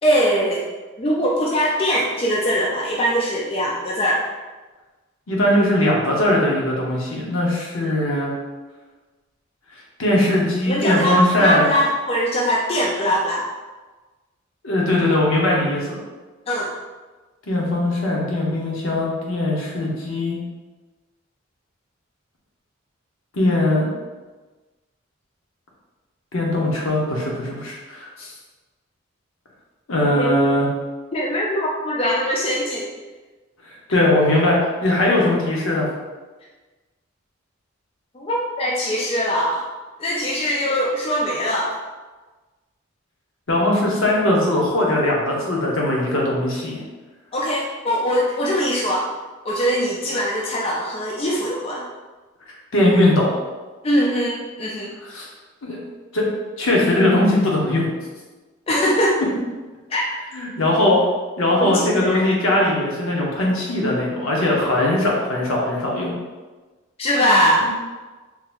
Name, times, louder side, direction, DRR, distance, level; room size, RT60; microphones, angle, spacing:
voice 1, 0.0-0.6 1.0-4.3 7.8-7.9 10.7-13.5 16.5-16.7 30.2-30.3 31.1-32.9 38.1-39.6 40.0-41.7 47.3-49.1 49.4-51.8 53.8-54.9 58.7-59.2 59.9-60.0 61.6-62.3 67.0-67.7, equal, 30° left, -3 dB, 0.3 m, -21 dB
voice 2, 5.3-8.3 10.0-11.7 14.6-16.0 17.5-20.4 23.3-23.9 26.3-28.3 29.9-30.7 33.9-35.9 43.5-46.8 52.7-53.4 55.1-55.3 55.6-55.8 56.1-56.3 56.6-57.9 60.3-61.1 61.4-66.1, left 1 dB, 75° left, -3 dB, 0.9 m, -20 dB
3.9 x 2.8 x 2.5 m, 1.3 s
head